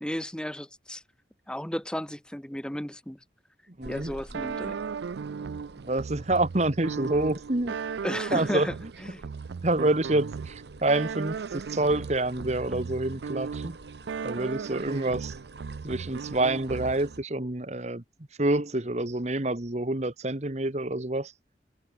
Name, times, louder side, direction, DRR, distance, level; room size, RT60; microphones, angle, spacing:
voice 1, 0.0-1.0 1.5-3.2 3.8-4.8 8.0-8.7 9.0-9.2, equal, 5° left, 0.8 m, -34 dB
voice 2, 3.8-4.1 5.9-7.8 8.3-8.7 9.6-13.8 14.2-15.4 15.8-18.0 18.4-21.3, right 2 dB, 40° right, 1.3 m, -27 dB
sound 1, 3.8-17.2, right 2 dB, 75° right, 7.3 m, -50 dB
sound 2, 4.3-17.2, right 5 dB, 90° right, 0.4 m, -36 dB
head